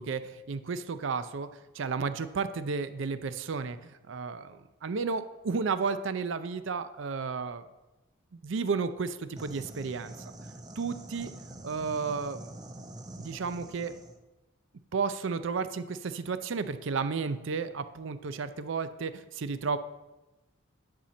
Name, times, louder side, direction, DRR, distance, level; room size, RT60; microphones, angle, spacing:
voice 1, 0.0-1.5 1.7-7.6 8.3-10.1 10.8-11.3 11.6-12.4 13.2-13.9 14.9-19.8, right 5 dB, 65° right, 12 dB, 0.5 m, -32 dB
sound 1, 9.4-14.2, right 1 dB, 20° right, 0.6 m, -45 dB
10.0 x 4.3 x 7.0 m, 1.1 s
head